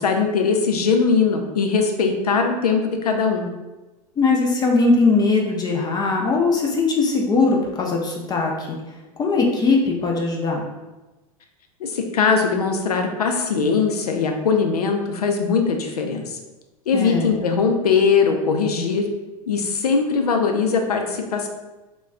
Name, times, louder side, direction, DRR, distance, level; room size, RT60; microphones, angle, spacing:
voice 1, 0.0-3.5 11.8-16.4 16.9-19.1 19.5-21.5, left 5 dB, 85° left, 4 dB, 0.5 m, -20 dB
voice 2, 4.2-8.8 9.2-10.7 16.9-17.3, left 3 dB, 20° left, 0 dB, 0.5 m, -20 dB
2.2 x 2.2 x 3.6 m, 1.1 s
hypercardioid pair, 95°, 19 cm